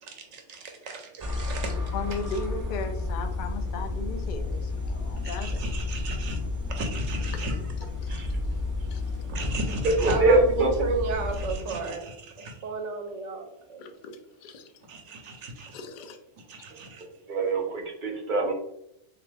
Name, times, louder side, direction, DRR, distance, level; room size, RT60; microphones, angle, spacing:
voice 1, 0.0-1.7 5.2-7.5 8.1-8.3 9.3-13.8 14.9-15.8 16.5-17.0, right 3 dB, 75° right, 3 dB, 1.1 m, -34 dB
sound 1, 1.2-11.5, left 3 dB, 25° right, 0.5 m, -31 dB
voice 2, 1.9-5.6 6.3-6.4 7.3-7.4 8.0-8.3 8.9-9.0 13.8-14.7 15.7-16.2, left 4 dB, 60° left, 6 dB, 0.5 m, -37 dB
voice 3, 10.0-10.7 17.3-18.5, right 2 dB, 45° right, 1 dB, 0.9 m, -23 dB
3.4 x 2.9 x 3.3 m, 0.75 s
omnidirectional pair, 1.2 m